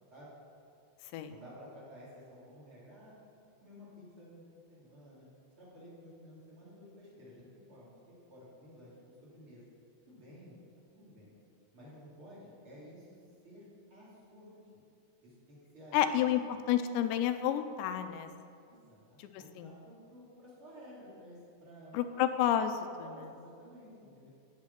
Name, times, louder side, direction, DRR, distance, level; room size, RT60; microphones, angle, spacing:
voice 1, 1.3-3.1 3.6-4.4 4.7-5.3 5.6-9.6 10.0-10.5 10.9-11.3 11.7-13.1 13.4-13.6 13.9-14.8 15.2-16.6 18.7-21.9 22.8-24.3, equal, 30° right, -7 dB, 4.6 m, -53 dB
voice 2, 15.9-16.4 16.7-18.3 19.2-19.7 21.9-23.2, left 10 dB, 85° left, 9 dB, 2.9 m, -30 dB
16.0 x 9.6 x 5.9 m, 2.4 s
omnidirectional pair, 5.0 m